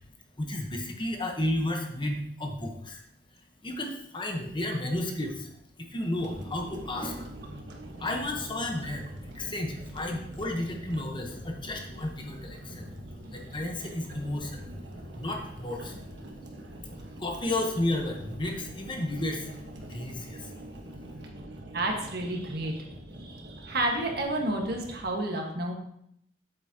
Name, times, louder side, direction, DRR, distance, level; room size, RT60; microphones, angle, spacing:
voice 1, 0.4-3.0 3.6-5.5 5.8-7.3 8.0-12.9 13.3-14.7 15.2-16.0 17.2-19.5 19.9-20.5, left 1 dB, 30° left, 3 dB, 1.0 m, -32 dB
sound 1, 6.2-25.0, right 1 dB, 80° right, 1.3 m, -44 dB
voice 2, 21.7-22.9 23.1-25.7, right 1 dB, 60° right, 1 dB, 1.5 m, -30 dB
8.3 x 8.0 x 2.9 m, 0.73 s
head